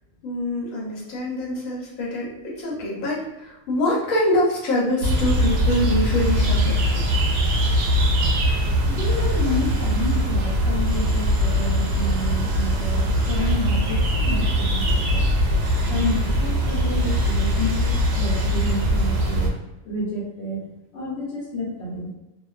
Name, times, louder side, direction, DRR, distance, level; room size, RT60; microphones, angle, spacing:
voice 1, 0.2-7.1, left 1 dB, 85° left, -4 dB, 1.1 m, -25 dB
sound 1, 5.0-19.5, equal, 65° right, 0.7 m, -21 dB
voice 2, 8.9-15.2 15.9-19.5 19.9-20.7 20.9-22.1, left 1 dB, 60° left, -4 dB, 0.9 m, -30 dB
2.4 x 2.3 x 2.3 m, 0.98 s
omnidirectional pair, 1.4 m